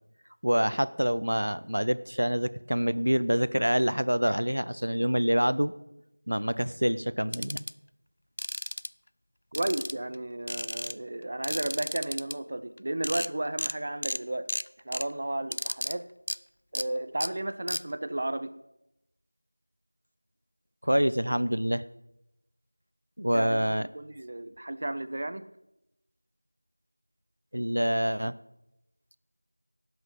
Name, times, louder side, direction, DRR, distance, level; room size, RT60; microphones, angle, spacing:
voice 1, 0.4-5.7 6.3-7.6 20.8-21.8 23.2-23.9 27.5-28.3, equal, 65° right, 16 dB, 0.7 m, -26 dB
sound 1, 7.3-7.7 8.4-8.9 9.5-10.1 10.5-10.9 11.4-12.3 12.8-12.9 13.0-13.3 13.6-13.7 14.0-14.2 14.5-15.0 15.5-15.9 16.3-16.4 16.7-16.8 17.2-17.3 17.7-17.8, left 1 dB, 45° left, 0.3 m, -33 dB
voice 2, 9.5-14.5 14.8-16.1 16.7-18.5 23.3-25.4, right 1 dB, 25° right, 13 dB, 0.5 m, -33 dB
18.5 x 7.9 x 5.5 m, 0.87 s
figure-of-eight pair, 175°, 0 cm